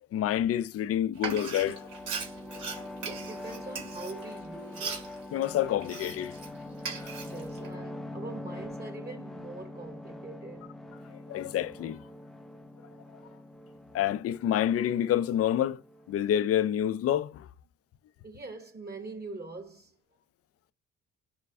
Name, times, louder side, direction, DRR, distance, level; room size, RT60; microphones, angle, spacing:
voice 1, 0.1-1.9 2.8-2.9 5.3-6.4 11.3-12.0 13.9-15.8 16.1-17.5, left 11 dB, 50° left, 0.4 m, -28 dB
sound 1, 1.1-16.6, left 1 dB, ahead, 0.5 m, -44 dB
Frying (food), 1.2-6.5 6.8-7.7, right 5 dB, 80° right, 2.0 m, -39 dB
voice 2, 3.0-5.0 7.2-10.7 18.2-20.0, right 3 dB, 30° right, 1.1 m, -43 dB
5.1 x 2.2 x 3.4 m
cardioid pair, 90°, 30 cm